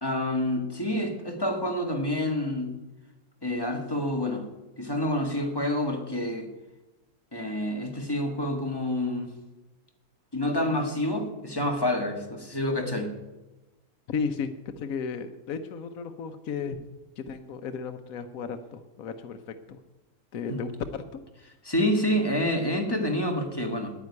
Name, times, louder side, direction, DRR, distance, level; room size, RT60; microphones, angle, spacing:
voice 1, 0.0-2.7 3.4-4.4 4.8-6.5 7.3-9.3 10.3-13.1 20.5-20.6 21.6-23.9, left 1 dB, 15° left, 3 dB, 1.7 m, -28 dB
voice 2, 14.1-16.8 17.2-19.4 19.7-19.8 20.3-21.2, left 5 dB, 65° left, 7 dB, 1.2 m, -34 dB
9.9 x 9.2 x 9.5 m, 1.1 s
omnidirectional pair, 1.7 m